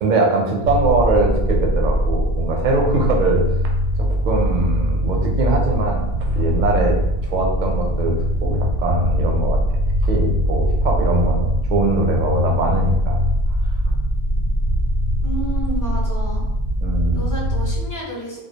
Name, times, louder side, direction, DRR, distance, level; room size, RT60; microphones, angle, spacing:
voice 1, 0.0-3.4 4.0-7.0 7.2-8.1 8.4-9.6 10.0-13.2 16.8-17.4, right 3 dB, 55° right, 1 dB, 0.5 m, -22 dB
sound 1, 0.6-17.8, equal, 85° right, 0.9 m, -21 dB
voice 2, 15.2-16.4 17.1-18.4, right 1 dB, 25° left, -5 dB, 0.4 m, -30 dB
2.3 x 2.2 x 2.7 m, 0.93 s
omnidirectional pair, 1.1 m